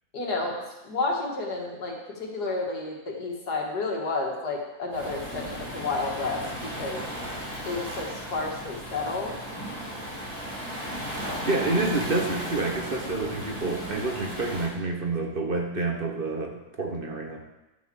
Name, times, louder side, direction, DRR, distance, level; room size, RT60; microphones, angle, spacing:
voice 1, 0.1-0.6 0.8-7.0 7.6-9.4 13.0-13.3, left 3 dB, 90° left, -1 dB, 2.7 m, -31 dB
Waves surf, 4.9-14.7, equal, 70° right, 4.5 m, -35 dB
voice 2, 11.4-17.4, right 3 dB, 40° right, 1 dB, 1.2 m, -28 dB
11.5 x 6.0 x 7.1 m, 1.0 s
omnidirectional pair, 1.7 m